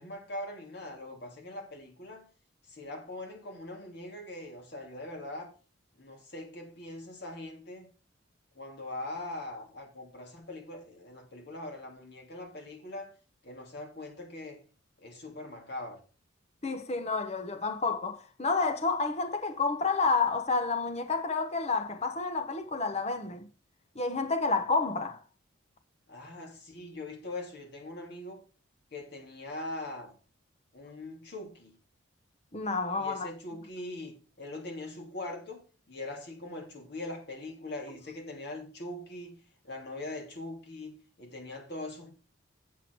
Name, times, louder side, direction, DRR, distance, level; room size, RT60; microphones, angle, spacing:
voice 1, 0.0-2.3 2.7-5.5 6.0-7.9 8.5-13.1 13.4-14.6 15.0-16.0 26.1-28.4 28.9-30.1 30.7-31.8 33.0-39.4 39.6-42.1, left 2 dB, 55° left, 2.9 m, -42 dB
voice 2, 16.6-23.5 24.0-25.2 32.5-33.3, left 4 dB, 30° left, 0.8 m, -30 dB
7.7 x 7.7 x 4.6 m
head